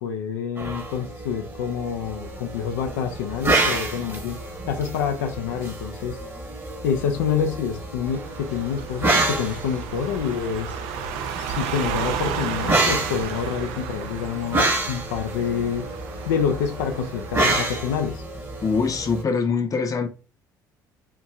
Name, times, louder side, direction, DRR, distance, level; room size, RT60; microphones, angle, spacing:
voice 1, 0.0-4.4 4.7-6.2 6.8-10.7 11.4-15.9 16.3-18.2, left 7 dB, 75° left, 0.5 m, -27 dB
sound 1, 0.6-19.2, right 2 dB, 25° right, 1.2 m, -29 dB
sound 2, 8.1-17.6, right 8 dB, 70° right, 0.5 m, -33 dB
voice 2, 18.6-20.1, left 5 dB, 35° left, 0.7 m, -23 dB
4.6 x 2.7 x 2.3 m
hypercardioid pair, 55°, 10 cm